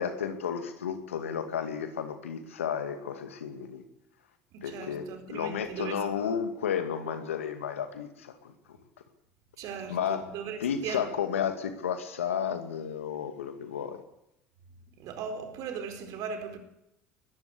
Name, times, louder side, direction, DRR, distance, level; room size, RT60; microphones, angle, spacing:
voice 1, 0.0-3.8 4.6-8.5 9.9-10.3 10.6-14.0, left 8 dB, 90° left, 2.4 m, -32 dB
voice 2, 4.5-6.0 9.6-11.1 15.0-16.6, right 6 dB, 60° right, 4.5 m, -38 dB
21.0 x 14.5 x 8.5 m
hypercardioid pair, 70°, 7 cm